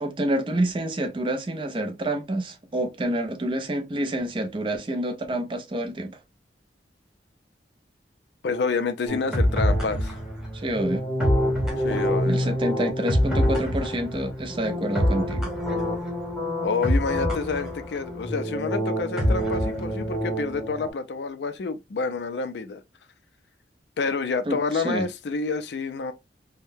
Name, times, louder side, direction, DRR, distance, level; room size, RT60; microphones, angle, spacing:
voice 1, 0.0-6.2 10.5-11.1 12.3-15.5 24.5-25.1, right 1 dB, 30° right, 0.5 m, -28 dB
voice 2, 8.4-10.2 11.8-12.6 16.6-22.8 24.0-26.1, left 4 dB, 75° left, 0.4 m, -28 dB
sound 1, 9.1-20.9, equal, 5° right, 1.0 m, -26 dB
3.5 x 2.1 x 2.6 m
head